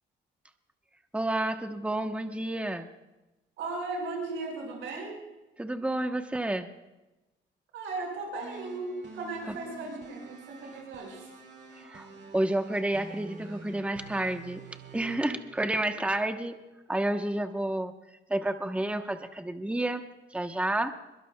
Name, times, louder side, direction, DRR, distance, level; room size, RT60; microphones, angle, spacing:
voice 1, 1.1-2.9 5.6-6.7 9.5-9.6 11.8-14.6 14.9-16.6 16.9-17.9 18.3-20.0 20.3-20.9, right 1 dB, 5° right, 7 dB, 0.9 m, -30 dB
voice 2, 3.6-5.2 7.7-11.3, right 3 dB, 90° right, 0 dB, 5.7 m, -36 dB
sound 1, 8.4-16.6, right 4 dB, 60° right, 2.3 m, -47 dB
22.0 x 22.0 x 2.3 m, 1.0 s
cardioid pair, 90°, 20 cm